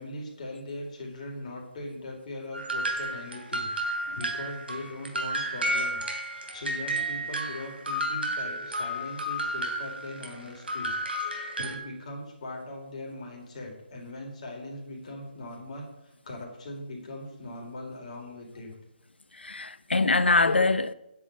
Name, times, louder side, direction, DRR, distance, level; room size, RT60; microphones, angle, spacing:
voice 1, 0.0-18.7, left 1 dB, 40° left, 3.9 m, -40 dB
sound 1, 2.5-11.8, right 1 dB, 75° right, 3.3 m, -32 dB
voice 2, 19.4-20.9, left 3 dB, 80° left, 0.9 m, -23 dB
10.0 x 6.1 x 8.5 m
figure-of-eight pair, 150°, 6 cm